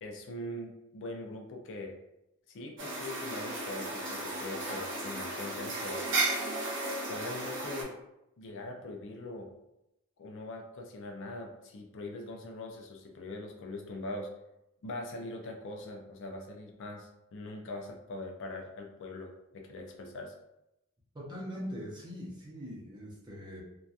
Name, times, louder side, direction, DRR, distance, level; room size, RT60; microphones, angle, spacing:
voice 1, 0.0-2.0 2.5-6.1 7.1-7.9 8.4-9.5 10.2-14.3 14.8-20.3, left 2 dB, 55° left, 2 dB, 0.4 m, -42 dB
sound 1, 2.8-7.8, right 2 dB, 55° right, 0.7 m, -34 dB
voice 2, 21.1-23.6, equal, 20° right, -5 dB, 0.6 m, -41 dB
2.7 x 2.2 x 2.3 m, 0.89 s
head